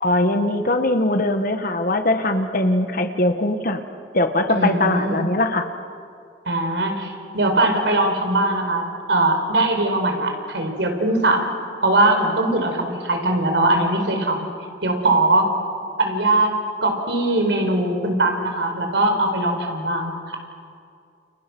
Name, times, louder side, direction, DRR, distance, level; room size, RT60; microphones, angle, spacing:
voice 1, 0.0-3.8 4.1-5.7, left 1 dB, 50° left, 6 dB, 1.6 m, -21 dB
voice 2, 4.5-5.3 6.4-11.5 11.8-14.5 14.8-15.5 16.0-16.5 16.8-20.1, right 2 dB, 80° right, 4 dB, 4.7 m, -20 dB
30.0 x 29.5 x 6.2 m, 2.3 s
head